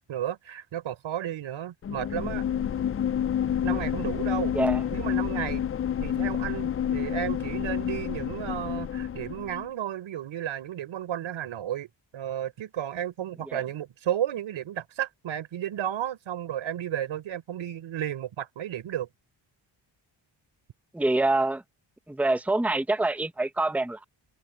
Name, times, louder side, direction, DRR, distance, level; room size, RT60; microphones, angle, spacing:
voice 1, 0.0-2.4 3.6-4.5 4.9-5.6 6.0-11.9 12.1-19.1, right 11 dB, 90° right, 4.5 m, -33 dB
sound 1, 1.8-9.6, left 9 dB, 30° left, 0.4 m, -29 dB
voice 2, 20.9-21.6 22.1-24.0, right 2 dB, 5° right, 1.0 m, -25 dB
cardioid pair, 110°, 46 cm